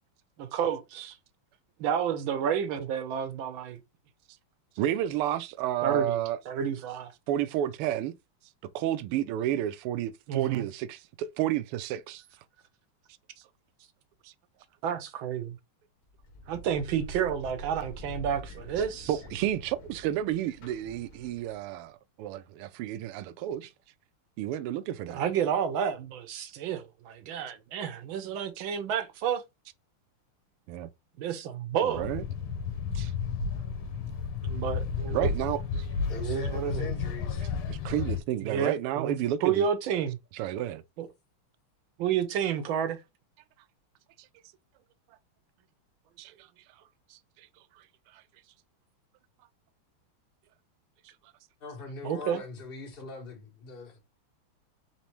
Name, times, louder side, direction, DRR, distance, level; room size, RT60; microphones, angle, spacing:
voice 1, 0.4-1.2 1.8-3.8 5.8-6.2 6.5-7.1 10.3-10.7 14.8-15.6 16.5-19.1 25.1-29.4 31.2-32.0 34.4-35.3 36.1-36.9 38.4-39.2 39.4-40.2 41.0-41.1 42.0-43.0 52.0-52.4, right 8 dB, 70° right, 1.4 m, -30 dB
voice 2, 4.8-6.4 7.3-8.1 8.7-12.2 14.2-14.3 19.1-23.7 24.4-25.2 30.7-30.9 31.8-32.2 32.9-33.1 35.1-35.9 37.7-39.7 40.3-40.8 46.2-46.5 47.1-47.2, right 12 dB, 85° right, 1.5 m, -31 dB
sound 1, 16.1-21.7, right 1 dB, 50° left, 1.5 m, -45 dB
sound 2, 31.9-38.2, left 5 dB, 75° left, 1.8 m, -32 dB
voice 3, 36.1-37.5 51.6-54.0, left 3 dB, 30° left, 1.3 m, -41 dB
4.1 x 4.1 x 3.0 m
omnidirectional pair, 2.4 m